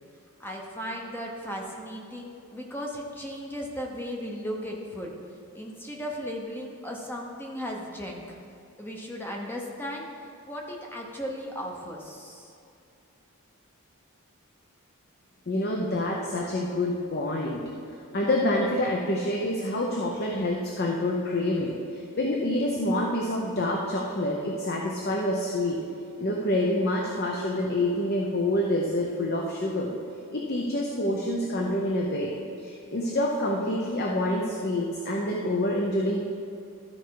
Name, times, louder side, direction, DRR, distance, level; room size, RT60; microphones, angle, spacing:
voice 1, 0.4-5.2 5.5-8.4 8.8-12.5, equal, 10° left, -1 dB, 0.7 m, -36 dB
voice 2, 15.5-17.6 18.1-25.8 26.2-29.9 30.3-36.2, left 1 dB, 45° left, -1 dB, 0.7 m, -27 dB
13.0 x 4.6 x 4.7 m, 2.6 s
head